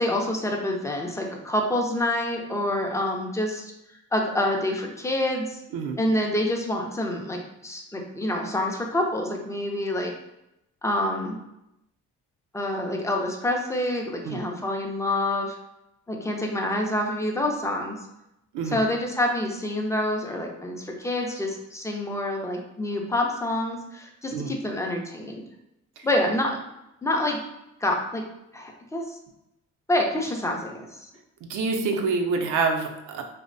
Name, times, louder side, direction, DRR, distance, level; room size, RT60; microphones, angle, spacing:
voice 1, 0.0-3.6 4.1-5.6 6.0-10.1 10.8-11.4 12.5-15.5 16.1-18.0 18.7-25.4 26.0-26.6 27.0-27.4 27.8-28.2 28.5-29.0 29.9-31.1, left 1 dB, 10° left, 1 dB, 0.4 m, -27 dB
voice 2, 31.4-33.2, right 4 dB, 80° right, 3 dB, 0.5 m, -27 dB
2.5 x 2.1 x 2.5 m, 0.86 s
cardioid pair, 90°, 30 cm